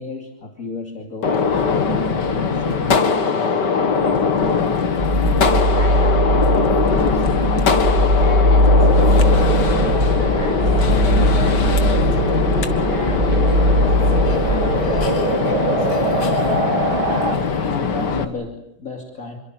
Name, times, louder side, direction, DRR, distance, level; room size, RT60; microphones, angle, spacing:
voice 1, 0.0-4.4 17.6-19.4, left 3 dB, 40° left, 2 dB, 3.1 m, -34 dB
Gunshot gunfire, 1.2-18.2, left 5 dB, 60° left, 2.4 m, -21 dB
sound 1, 5.0-15.1, equal, 30° right, 2.7 m, -19 dB
voice 2, 5.5-16.1, left 2 dB, 15° left, 3 dB, 6.5 m, -34 dB
sound 2, 8.6-17.4, right 2 dB, 85° right, 5.3 m, -24 dB
28.0 x 24.0 x 8.0 m, 0.77 s
omnidirectional pair, 2.1 m